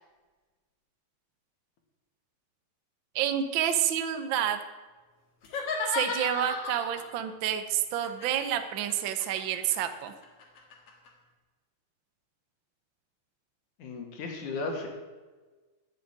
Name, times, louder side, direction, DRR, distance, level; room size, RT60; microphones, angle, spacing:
voice 1, 3.1-4.6 5.9-10.1, right 10 dB, 75° right, 8 dB, 1.1 m, -29 dB
sound 1, 5.4-7.1 8.0-11.1, left 4 dB, 55° left, 2.5 m, -35 dB
voice 2, 13.8-14.9, left 3 dB, 80° left, 3 dB, 3.4 m, -35 dB
11.0 x 7.7 x 8.9 m, 1.3 s
omnidirectional pair, 3.4 m